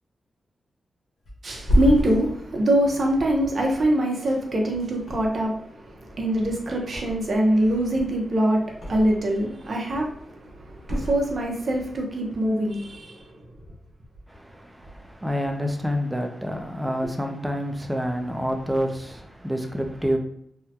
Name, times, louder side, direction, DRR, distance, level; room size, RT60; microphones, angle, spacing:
Thump thud, 1.2-4.5 5.0-5.7 6.0-7.5 7.8-9.4 9.7-10.3 10.8-11.8 12.1-12.3, equal, 55° left, 1.1 m, -29 dB
voice 1, 1.4-13.5, right 1 dB, 50° right, 0.7 m, -24 dB
voice 2, 14.3-20.2, equal, 5° right, 0.4 m, -28 dB
3.6 x 2.1 x 2.8 m
wide cardioid pair, 110°, 0 cm